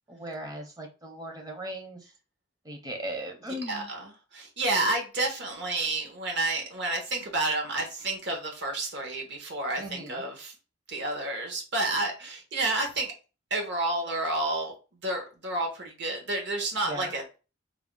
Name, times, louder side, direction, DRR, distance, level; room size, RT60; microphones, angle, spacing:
voice 1, 0.1-2.1 2.6-3.9 9.8-10.2 16.9-17.1, right 1 dB, 20° right, 0.6 m, -38 dB
voice 2, 3.7-10.5 10.9-13.1 13.5-17.4, right 2 dB, 60° right, 1.0 m, -30 dB
3.5 x 2.0 x 3.7 m
head